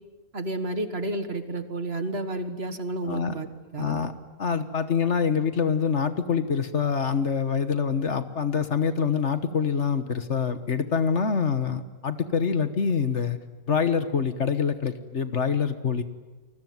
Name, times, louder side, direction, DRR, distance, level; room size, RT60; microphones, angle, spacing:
voice 1, 0.3-3.5 3.7-4.0, right 2 dB, 45° right, 9 dB, 1.8 m, -31 dB
voice 2, 3.8-4.1 4.4-13.4 13.7-16.0, left 6 dB, 50° left, 11 dB, 1.5 m, -25 dB
28.0 x 21.0 x 9.5 m, 1.2 s
omnidirectional pair, 1.5 m